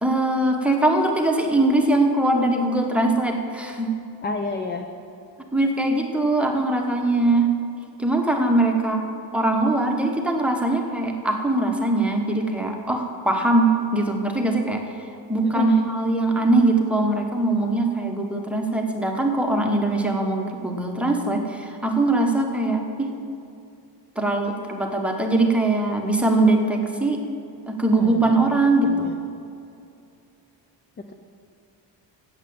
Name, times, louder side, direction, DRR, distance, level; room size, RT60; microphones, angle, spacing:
voice 1, 0.0-3.9 5.5-7.5 8.0-9.0 9.3-14.9 15.3-23.1 24.2-27.2 27.7-29.1, right 2 dB, 5° right, 1 dB, 0.9 m, -21 dB
voice 2, 4.2-4.9 15.4-15.9 27.9-28.4 28.8-29.2, left 3 dB, 25° left, 4 dB, 0.4 m, -29 dB
8.0 x 7.3 x 8.5 m, 2.6 s
cardioid pair, 145°, 44 cm